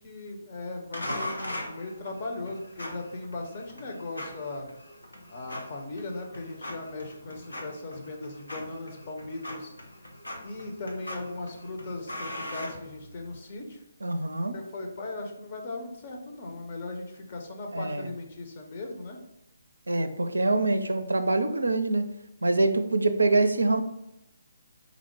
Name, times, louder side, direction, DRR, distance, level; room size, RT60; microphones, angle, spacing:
voice 1, 0.0-4.7 5.3-9.7 10.4-13.8 14.5-19.2, left 2 dB, 40° left, 2 dB, 0.7 m, -38 dB
sound 1, 0.9-13.4, left 1 dB, 85° left, 0.8 m, -40 dB
voice 2, 14.0-14.5 17.7-18.1 19.9-22.1 22.4-23.8, right 2 dB, 75° right, 9 dB, 0.4 m, -25 dB
4.0 x 2.1 x 4.5 m, 0.83 s
figure-of-eight pair, 140°, 0 cm